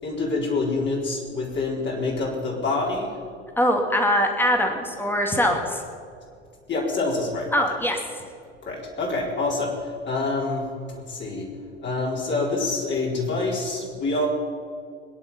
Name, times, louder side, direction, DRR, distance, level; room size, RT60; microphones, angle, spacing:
voice 1, 0.0-3.1 6.7-7.5 8.6-11.5 11.8-14.3, left 3 dB, 30° left, -3 dB, 4.4 m, -26 dB
voice 2, 3.6-5.8 7.5-8.0, equal, 5° left, 3 dB, 2.7 m, -22 dB
23.5 x 10.5 x 5.7 m, 2.3 s
figure-of-eight pair, 70°, 34 cm